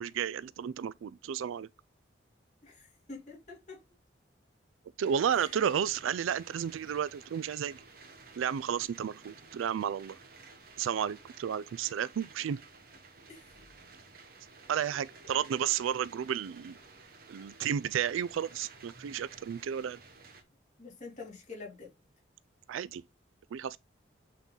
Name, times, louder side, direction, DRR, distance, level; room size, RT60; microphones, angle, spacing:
voice 1, 0.0-1.7 5.0-7.8 8.4-10.2 10.8-12.6 14.7-16.8 17.3-20.0 22.7-23.0 23.5-23.8, right 8 dB, 85° right, 0.3 m, -32 dB
voice 2, 2.6-3.8 5.3-5.6 13.3-13.5 15.2-15.5 20.8-21.9, left 3 dB, 35° left, 3.3 m, -47 dB
sound 1, 5.0-20.4, right 4 dB, 50° right, 1.2 m, -54 dB
8.2 x 3.8 x 3.9 m
head